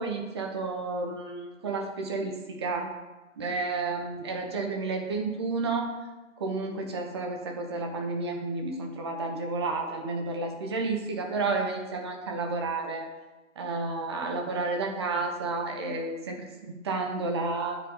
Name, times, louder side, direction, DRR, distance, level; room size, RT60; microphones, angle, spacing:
voice 1, 0.0-2.9 3.4-5.9 6.4-13.1 13.6-17.8, right 3 dB, 20° right, 2 dB, 0.6 m, -31 dB
8.0 x 4.7 x 3.8 m, 1.1 s
figure-of-eight pair, 145°, 39 cm